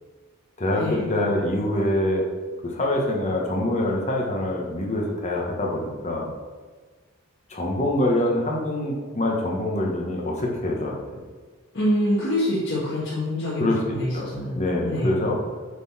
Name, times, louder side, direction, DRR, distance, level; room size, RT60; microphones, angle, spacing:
voice 1, 0.6-2.2 2.6-6.3 7.5-11.0 13.6-15.4, left 1 dB, 35° left, -2 dB, 1.3 m, -25 dB
voice 2, 11.7-14.6 14.8-15.2, left 1 dB, 55° left, -10 dB, 1.8 m, -25 dB
8.2 x 4.0 x 4.2 m, 1.4 s
head